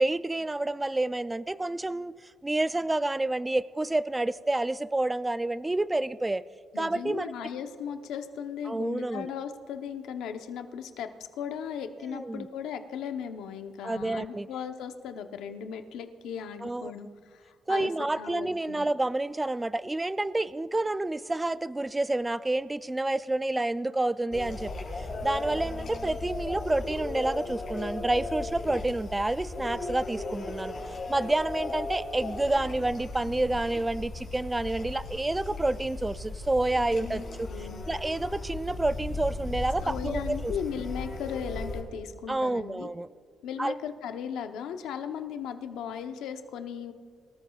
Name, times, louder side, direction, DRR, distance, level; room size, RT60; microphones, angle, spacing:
voice 1, 0.0-6.4 6.8-7.5 8.7-9.3 12.1-12.5 13.8-14.5 16.6-16.9 17.7-40.5 42.3-43.1 43.6-43.7, right 2 dB, 15° right, 14 dB, 0.3 m, -29 dB
voice 2, 6.7-11.1 11.4-17.9 18.2-18.9 36.8-37.9 39.8-42.9 43.4-46.9, left 8 dB, 85° left, 7 dB, 0.8 m, -37 dB
sound 1, 24.3-41.8, left 2 dB, 55° left, 4.2 m, -36 dB
24.5 x 13.5 x 2.4 m, 2.1 s
cardioid pair, 90°, 0 cm